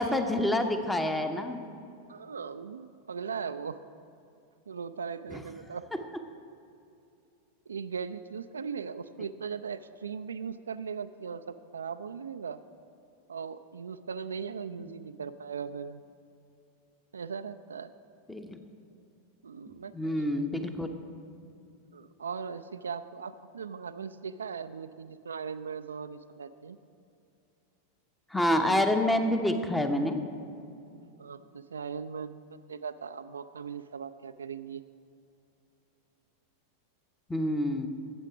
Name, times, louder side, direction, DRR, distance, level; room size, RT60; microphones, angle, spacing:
voice 1, 0.0-1.6 5.3-5.4 14.8-14.9 18.3-18.6 19.9-20.9 28.3-30.2 37.3-37.9, left 1 dB, 5° left, 7 dB, 0.8 m, -27 dB
voice 2, 2.1-3.8 4.7-5.8 7.7-12.6 13.3-16.0 17.1-17.9 19.4-20.5 21.9-26.8 31.2-34.8, right 6 dB, 70° right, 11 dB, 0.3 m, -39 dB
13.0 x 8.1 x 4.9 m, 2.6 s
figure-of-eight pair, 90°, 0 cm